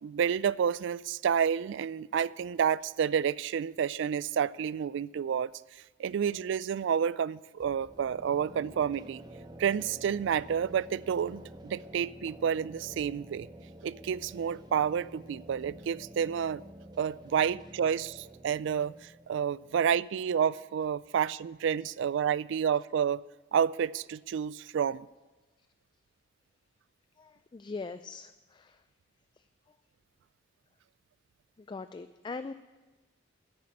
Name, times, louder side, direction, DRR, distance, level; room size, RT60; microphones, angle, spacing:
voice 1, 0.0-5.5 6.0-9.2 9.6-13.5 13.8-16.6 17.0-23.2 23.5-25.1, right 8 dB, 65° right, 0.3 m, -29 dB
sound 1, 7.6-21.3, right 1 dB, 20° right, 0.8 m, -50 dB
voice 2, 27.2-28.8 31.6-32.5, left 4 dB, 25° left, 0.3 m, -41 dB
10.5 x 9.5 x 8.6 m
head